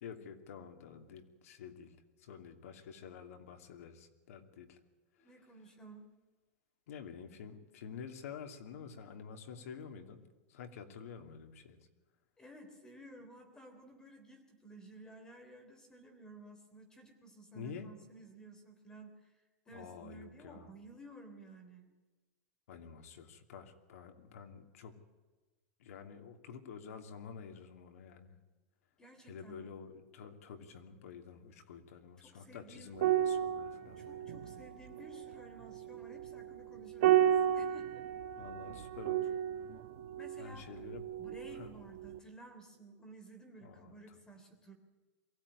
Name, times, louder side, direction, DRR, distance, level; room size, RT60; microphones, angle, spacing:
voice 1, 0.0-4.8 5.2-5.4 6.9-10.2 10.5-11.9 17.5-17.9 19.7-20.7 22.7-25.0 25.8-28.4 29.2-34.3 38.4-39.3 40.4-41.1 41.5-41.7 43.6-44.2, left 6 dB, 80° left, 6 dB, 2.9 m, -49 dB
voice 2, 5.2-6.1 12.4-21.9 29.0-29.7 32.2-32.9 34.0-38.0 40.2-40.7 41.2-44.7, right 2 dB, 10° left, 6 dB, 3.3 m, -54 dB
sound 1, 32.9-41.7 42.0-42.2, right 10 dB, 55° right, 1.2 m, -33 dB
23.0 x 16.5 x 9.8 m, 1.2 s
supercardioid pair, 170°, 8 cm